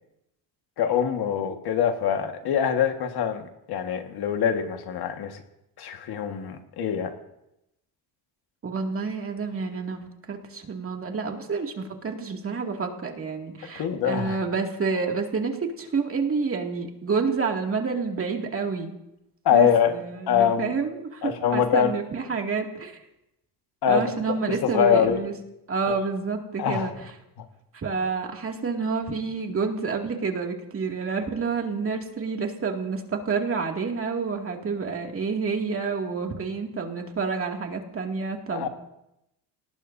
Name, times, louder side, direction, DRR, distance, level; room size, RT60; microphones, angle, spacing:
voice 1, 0.8-5.4 5.8-7.1 13.8-14.4 19.5-19.9 20.3-20.7 21.2-21.9 23.8-24.1 24.6-25.2 25.9-26.0 26.6-26.9 27.4-27.5 38.5-38.7, left 8 dB, 65° left, 5 dB, 1.7 m, -24 dB
voice 2, 8.6-18.9 19.5-23.0 23.9-25.3 25.7-26.9 27.7-38.7, right 5 dB, 35° right, 2 dB, 2.3 m, -29 dB
26.5 x 19.0 x 2.7 m, 0.85 s
cardioid pair, 115°, 40 cm